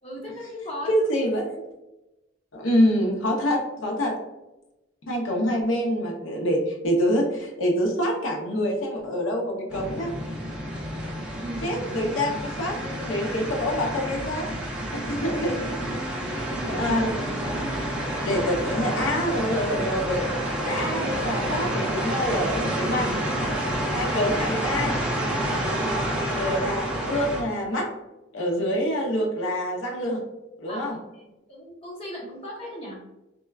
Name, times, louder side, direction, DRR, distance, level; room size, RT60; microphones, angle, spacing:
voice 1, 0.0-1.1 11.4-11.7 16.7-16.8 25.7-26.4 30.7-33.0, equal, 30° left, -4 dB, 0.8 m, -38 dB
voice 2, 0.9-1.6 2.5-4.2 5.1-10.1 11.6-15.8 16.7-17.3 18.2-20.3 20.6-23.1 23.9-25.0 26.3-27.9 28.3-30.3 30.6-31.0, equal, 90° left, 0 dB, 0.6 m, -26 dB
sound 1, 9.7-27.4, right 1 dB, 5° right, 0.4 m, -29 dB
4.3 x 2.2 x 2.3 m, 0.99 s
head